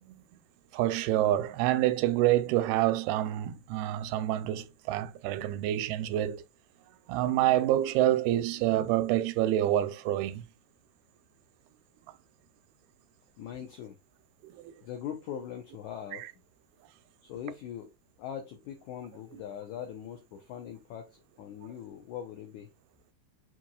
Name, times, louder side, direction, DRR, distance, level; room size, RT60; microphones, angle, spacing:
voice 1, 0.7-6.4 7.1-10.4 14.4-14.7 16.1-16.2, right 13 dB, 85° right, 2.5 m, -27 dB
voice 2, 13.4-14.0 14.8-16.3 17.2-17.9 18.2-22.7, left 9 dB, 85° left, 1.6 m, -41 dB
7.5 x 3.0 x 2.3 m
omnidirectional pair, 4.4 m